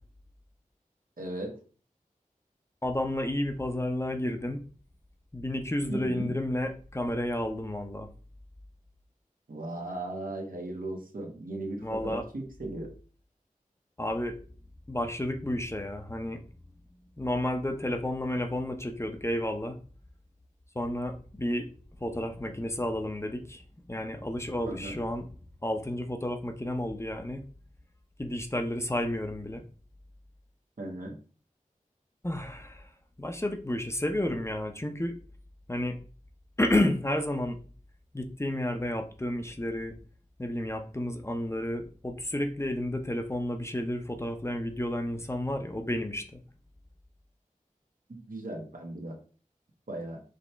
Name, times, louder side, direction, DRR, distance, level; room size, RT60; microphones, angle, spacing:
voice 1, 1.2-1.6 5.9-6.3 9.5-12.9 24.7-25.0 30.8-31.1 48.1-49.2 49.9-50.2, right 1 dB, 80° right, 0 dB, 1.2 m, -37 dB
voice 2, 2.8-4.6 5.3-8.1 11.8-12.2 14.0-14.4 14.9-16.4 17.2-19.8 20.7-21.7 22.0-23.6 23.9-25.3 25.6-27.4 28.2-29.7 32.2-32.9 33.2-35.2 35.7-36.0 36.6-37.6 38.1-39.9 40.4-46.4, left 1 dB, 20° left, 5 dB, 0.6 m, -31 dB
5.1 x 2.9 x 3.3 m, 0.40 s
wide cardioid pair, 45°, 14 cm